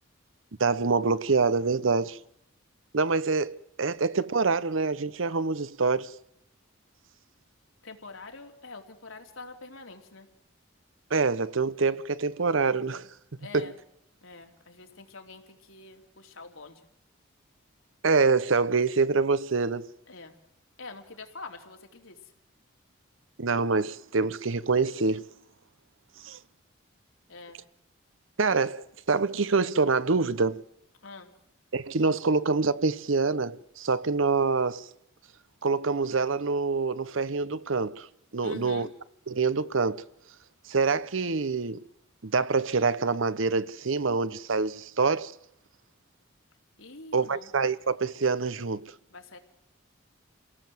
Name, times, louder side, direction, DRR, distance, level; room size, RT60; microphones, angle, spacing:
voice 1, 0.6-2.2 2.9-6.1 11.1-13.1 13.5-13.7 18.0-19.9 23.4-25.3 26.2-26.4 28.4-30.6 31.7-34.9 35.6-38.1 38.3-38.9 39.3-40.0 40.7-41.8 42.2-45.3 47.1-48.8, right 4 dB, 75° right, 0.8 m, -26 dB
voice 2, 7.8-10.3 13.4-13.8 14.2-16.9 20.1-20.3 20.8-22.2 27.3-27.6 31.0-31.3 38.4-38.9 46.8-47.5 49.1-49.4, left 3 dB, 80° left, 3.0 m, -45 dB
28.0 x 17.5 x 7.7 m
head